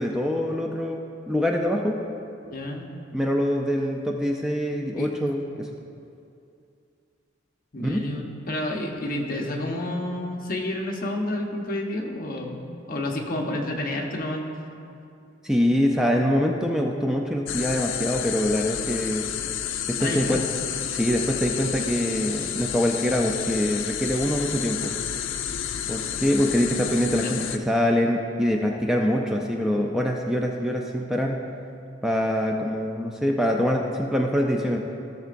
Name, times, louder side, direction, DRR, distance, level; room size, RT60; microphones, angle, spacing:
voice 1, 0.0-2.0 3.1-5.7 7.8-8.0 15.4-19.3 19.9-20.5 20.9-24.9 25.9-31.4 32.0-34.9, equal, 5° right, 0 dB, 0.4 m, -24 dB
voice 2, 2.5-2.9 5.0-5.1 7.7-14.4 20.0-20.4 27.2-27.4, left 1 dB, 50° left, 0 dB, 1.0 m, -30 dB
sound 1, 17.5-27.6, left 9 dB, 80° left, 0.5 m, -31 dB
15.5 x 6.6 x 2.5 m, 2.6 s
head